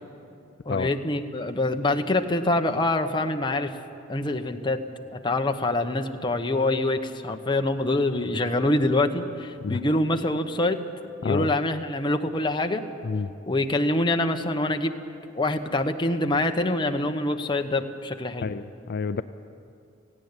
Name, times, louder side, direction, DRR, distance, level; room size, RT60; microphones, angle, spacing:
voice 1, 0.6-3.7 4.1-4.8 5.1-10.8 11.2-12.8 13.5-14.9 15.3-18.5, left 2 dB, 25° left, 5 dB, 1.0 m, -25 dB
voice 2, 11.2-11.5 13.0-13.3 18.4-19.2, left 4 dB, 55° left, 11 dB, 0.4 m, -28 dB
17.5 x 16.5 x 9.7 m, 2.5 s
head